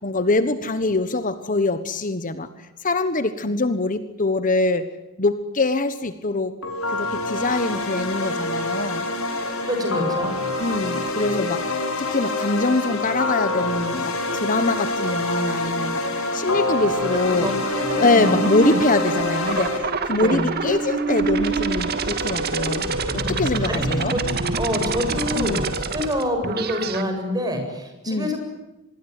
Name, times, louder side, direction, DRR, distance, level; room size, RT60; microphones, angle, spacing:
voice 1, 0.0-2.5 2.8-4.9 5.2-6.5 6.9-9.0 10.6-16.0 16.3-17.5 18.0-22.9 23.3-24.2 25.4-25.6 28.1-28.3, left 2 dB, 40° left, 11 dB, 1.3 m, -23 dB
sound 1, 6.6-19.8, left 2 dB, 80° left, 6.3 m, -26 dB
voice 2, 9.6-10.3 17.3-17.5 17.9-18.3 20.1-20.5 23.1-23.3 23.7-24.2 24.5-25.7 25.9-28.4, left 1 dB, 20° right, 4 dB, 7.7 m, -26 dB
sound 2, 17.7-27.0, right 4 dB, 50° right, 2.4 m, -26 dB
26.0 x 21.5 x 9.8 m, 1.0 s
head